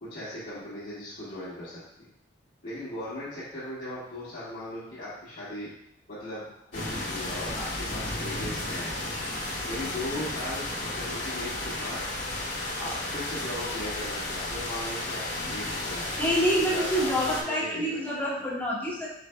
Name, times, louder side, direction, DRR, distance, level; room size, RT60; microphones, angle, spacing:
voice 1, 0.0-2.1 2.6-5.7 6.1-6.5 6.7-8.9 9.7-12.0 12.8-15.2 15.5-16.2 16.7-18.0, left 1 dB, 55° left, -13 dB, 1.6 m, -38 dB
sound 1, 6.7-17.4, left 2 dB, 75° left, 1.4 m, -33 dB
voice 2, 16.2-19.1, equal, 10° left, -6 dB, 1.0 m, -27 dB
4.9 x 4.2 x 2.2 m, 0.78 s
head